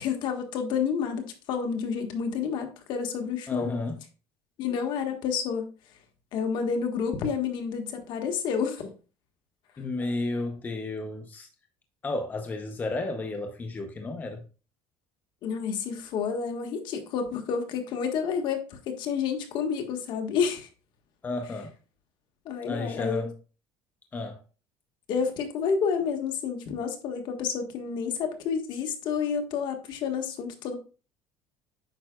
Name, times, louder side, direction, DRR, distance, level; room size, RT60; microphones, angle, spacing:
voice 1, 0.0-3.7 4.6-5.7 6.3-8.9 15.4-20.7 22.4-23.3 25.1-30.7, left 6 dB, 55° left, 1.4 m, -29 dB
voice 2, 3.5-4.0 9.8-11.5 12.0-14.4 21.2-21.7 22.6-23.3 24.1-24.4, left 2 dB, 20° left, 0.7 m, -32 dB
8.9 x 5.7 x 2.3 m
cardioid pair, 140°, 9 cm